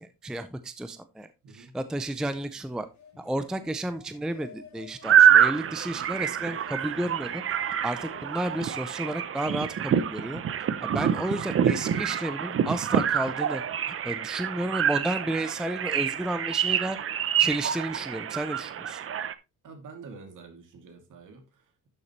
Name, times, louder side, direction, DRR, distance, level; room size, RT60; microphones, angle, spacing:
voice 1, 0.0-2.9 3.2-7.4 7.8-10.4 10.8-13.6 14.0-17.0 17.4-19.0, right 1 dB, ahead, 0.5 m, -32 dB
voice 2, 1.4-1.8 19.6-21.9, right 4 dB, 60° right, 2.6 m, -47 dB
sound 1, 2.6-8.6, left 5 dB, 55° left, 3.6 m, -53 dB
sound 2, 5.0-19.3, right 9 dB, 40° right, 0.7 m, -26 dB
11.5 x 7.0 x 3.1 m
cardioid pair, 170°, 35 cm